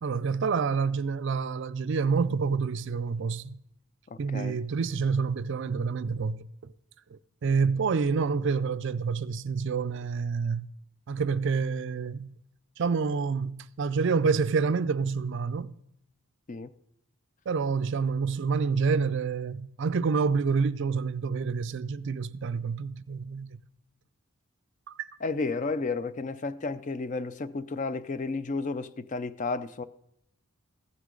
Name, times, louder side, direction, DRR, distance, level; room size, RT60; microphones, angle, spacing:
voice 1, 0.0-3.6 4.2-6.4 7.1-10.7 11.1-12.3 12.8-15.7 17.5-23.5 24.9-25.1, right 5 dB, 55° right, 0.4 m, -28 dB
voice 2, 4.1-4.6 16.5-16.7 25.2-29.8, left 3 dB, 35° left, 0.4 m, -32 dB
15.0 x 9.5 x 3.8 m
head